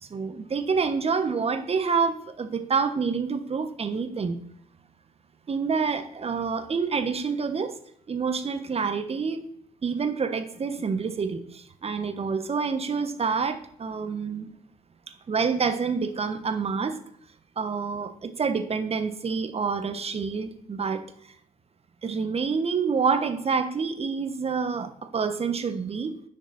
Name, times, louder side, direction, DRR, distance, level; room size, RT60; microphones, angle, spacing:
voice 1, 0.0-4.4 5.5-7.8 8.1-9.5 9.8-14.5 15.3-17.0 17.6-21.0 22.0-26.2, right 5 dB, 35° right, 10 dB, 1.2 m, -27 dB
10.5 x 6.6 x 4.2 m, 0.66 s
figure-of-eight pair, 45°, 17 cm